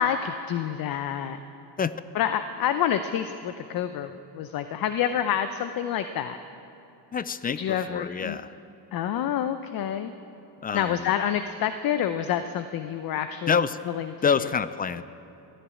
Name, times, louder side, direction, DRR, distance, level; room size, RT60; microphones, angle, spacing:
voice 1, 0.0-1.4 2.1-6.4 7.6-8.4 8.9-10.1 10.7-13.6 13.9-14.5, left 9 dB, 50° left, 10 dB, 0.8 m, -28 dB
voice 2, 7.1-8.5 10.6-11.1 13.5-13.8 14.2-15.0, left 6 dB, 20° left, 15 dB, 0.3 m, -27 dB
15.0 x 10.5 x 8.5 m, 2.9 s
supercardioid pair, 95°, 45 cm